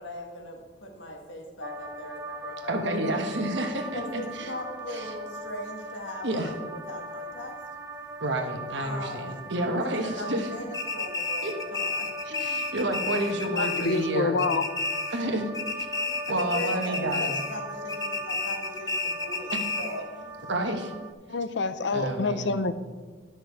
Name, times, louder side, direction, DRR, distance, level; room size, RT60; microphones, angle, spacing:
voice 1, 0.0-3.2 3.9-7.6 8.8-9.5 9.8-12.1 16.0-20.3 21.9-22.4, left 1 dB, 85° left, 2 dB, 1.6 m, -39 dB
sound 1, 1.6-21.1, equal, 15° right, 0.6 m, -39 dB
voice 2, 2.7-4.5 4.9-5.1 6.2-6.5 8.2-10.5 11.4-11.5 12.3-14.4 15.1-15.5 16.3-17.3 19.5-19.6 20.5-20.9 21.9-22.6, right 1 dB, 75° right, 4 dB, 1.3 m, -30 dB
sound 2, 10.7-14.1 14.4-15.3 15.5-17.6 17.9-20.0, left 3 dB, 20° left, 0.8 m, -31 dB
voice 3, 13.5-14.6 21.3-22.7, left 3 dB, 70° left, 12 dB, 0.6 m, -27 dB
11.5 x 6.2 x 4.8 m, 1.5 s
head